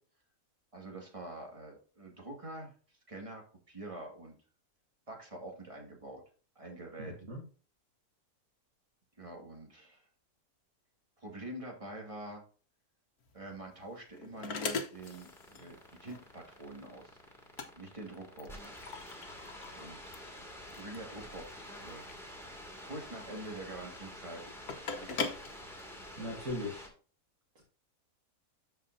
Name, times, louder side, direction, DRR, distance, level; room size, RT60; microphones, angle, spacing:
voice 1, 0.7-2.7 3.1-4.4 5.1-6.2 6.6-7.1 9.2-10.1 11.2-12.4 13.3-17.2 17.8-18.7 19.7-20.2 20.7-22.1 22.8-24.5 25.0-25.2, right 2 dB, 20° right, 0 dB, 2.2 m, -46 dB
voice 2, 7.0-7.4 26.2-26.9 27.6-27.7, left 1 dB, 60° right, -2 dB, 2.3 m, -39 dB
sound 1, 13.2-26.5, left 5 dB, 85° left, 1.5 m, -43 dB
sound 2, 14.9-26.9, equal, ahead, 2.3 m, -48 dB
13.0 x 4.7 x 2.7 m, 0.40 s
omnidirectional pair, 1.6 m